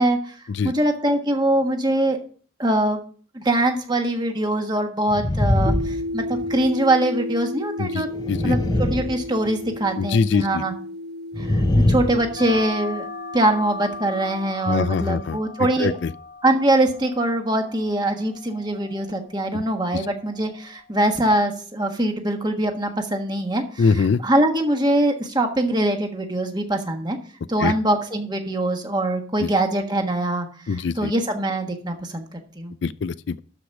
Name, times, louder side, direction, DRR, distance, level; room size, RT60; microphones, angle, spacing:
voice 1, 0.0-0.4 0.6-2.2 2.6-8.1 8.4-10.7 11.4-13.1 13.3-15.9 16.4-27.2 27.5-32.7, right 1 dB, 20° right, 1.4 m, -23 dB
sound 1, 5.1-6.7 8.1-9.8 11.3-12.6, left 1 dB, 20° left, 0.7 m, -22 dB
sound 2, 5.7-14.5, left 1 dB, 55° right, 1.1 m, -33 dB
voice 2, 7.8-8.6 10.0-10.6 14.7-16.1 19.5-19.6 19.9-20.0 23.8-24.2 27.6-27.7 29.4-29.5 30.7-31.1 32.8-33.4, left 5 dB, 65° left, 0.4 m, -23 dB
sound 3, 12.4-21.4, left 3 dB, 40° left, 1.1 m, -39 dB
12.5 x 5.0 x 6.0 m
head